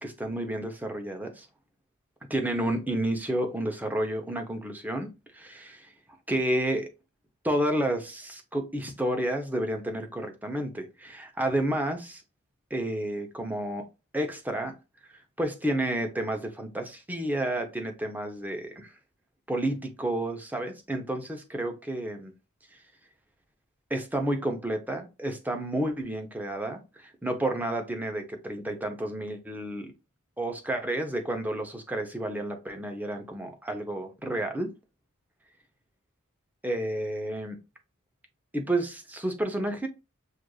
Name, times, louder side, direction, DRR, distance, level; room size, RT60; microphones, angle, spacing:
voice 1, 0.0-1.5 2.3-5.9 6.3-6.9 7.4-12.2 12.7-13.8 14.1-14.7 15.4-18.9 19.5-22.3 23.9-29.9 30.4-34.7 36.6-37.6 38.5-39.9, right 1 dB, 10° right, 0.7 m, -30 dB
6.3 x 2.5 x 2.3 m
head